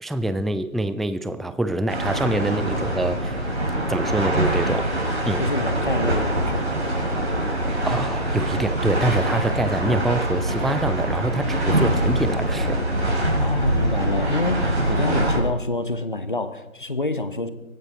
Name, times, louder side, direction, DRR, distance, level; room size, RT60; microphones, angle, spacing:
voice 1, 0.0-3.4 3.9-4.9 5.2-5.4 7.8-12.8, right 1 dB, ahead, 12 dB, 0.4 m, -25 dB
sound 1, 1.9-15.4, right 1 dB, 50° right, 5.7 m, -23 dB
voice 2, 5.4-6.7 13.4-17.5, left 2 dB, 35° left, 11 dB, 0.9 m, -27 dB
23.5 x 11.0 x 4.0 m, 1.0 s
figure-of-eight pair, 165°, 42 cm